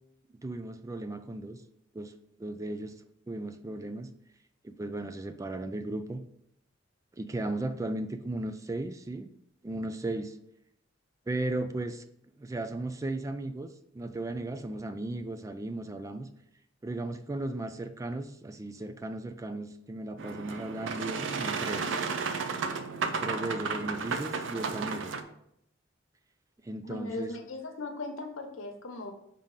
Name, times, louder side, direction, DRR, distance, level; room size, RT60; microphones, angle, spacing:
voice 1, 0.4-1.6 1.9-3.0 3.3-4.1 4.6-6.2 7.2-9.3 9.6-10.4 11.3-12.0 12.4-16.3 16.8-21.9 23.2-25.1 26.6-27.3, right 2 dB, 15° right, 9 dB, 0.3 m, -36 dB
Boat Water vehicle, 20.2-25.2, right 5 dB, 65° right, 0.5 m, -33 dB
voice 2, 26.8-29.1, left 2 dB, 90° left, 5 dB, 1.0 m, -38 dB
5.1 x 3.7 x 5.6 m, 0.75 s
head